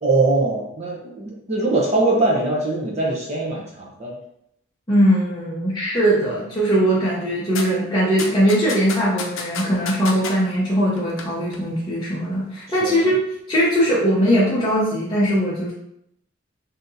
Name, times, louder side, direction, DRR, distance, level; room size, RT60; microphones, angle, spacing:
voice 1, 0.0-4.1 12.8-13.0, right 2 dB, 30° right, -2 dB, 0.7 m, -22 dB
voice 2, 4.9-13.2 13.5-15.7, equal, 20° left, -10 dB, 0.7 m, -20 dB
sound 1, 7.6-7.7 8.2-10.3 11.0-11.3 11.5-11.6, left 5 dB, 80° left, 0.5 m, -29 dB
3.6 x 2.8 x 2.6 m, 0.75 s
head